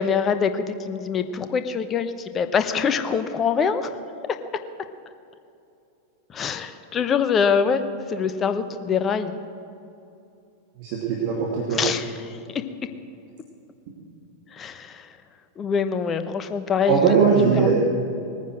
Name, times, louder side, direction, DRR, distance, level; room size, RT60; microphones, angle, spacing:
voice 1, 0.0-3.9 6.3-7.8 8.1-9.3 11.7-12.4 14.5-15.1 15.6-17.0 17.6-17.7, left 6 dB, 25° left, 10 dB, 0.9 m, -24 dB
voice 2, 10.8-11.8 16.9-17.7, right 6 dB, 45° right, -3 dB, 2.4 m, -20 dB
20.0 x 9.6 x 6.3 m, 2.7 s
figure-of-eight pair, 90°, 0 cm